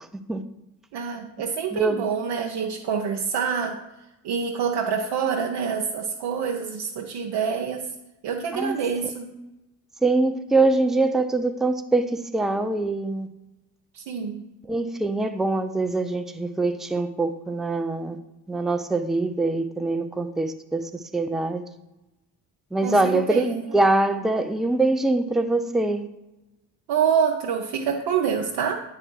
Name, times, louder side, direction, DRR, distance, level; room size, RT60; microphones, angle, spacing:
voice 1, 0.9-3.8 4.2-7.9 8.2-9.3 13.9-14.4 22.8-23.8 26.9-28.8, right 7 dB, 50° right, 1 dB, 0.8 m, -26 dB
voice 2, 1.7-2.0 8.5-8.8 9.4-9.5 10.0-13.3 14.7-18.2 18.5-21.6 22.7-26.1, right 2 dB, ahead, 8 dB, 0.5 m, -24 dB
8.7 x 4.7 x 4.7 m, 0.97 s
hypercardioid pair, 45°, 50 cm